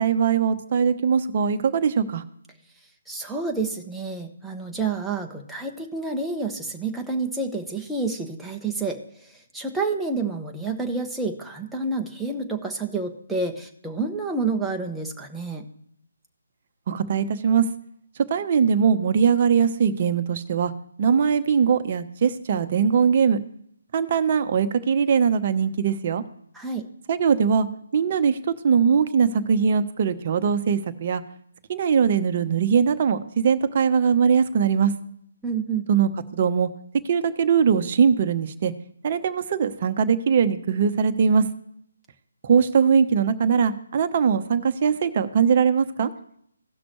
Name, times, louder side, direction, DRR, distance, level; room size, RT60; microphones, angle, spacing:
voice 1, 0.0-2.2 16.9-17.7 18.3-20.7 21.0-23.4 23.9-26.2 27.1-27.7 27.9-31.2 31.7-34.9 35.9-36.7 37.0-38.7 39.0-41.4 42.4-46.1, right 6 dB, 40° right, 10 dB, 0.8 m, -21 dB
voice 2, 3.1-15.7 26.5-26.9 35.4-35.9, right 3 dB, 5° right, 0 dB, 1.0 m, -29 dB
17.0 x 6.1 x 3.1 m, 0.69 s
figure-of-eight pair, 145°, 0 cm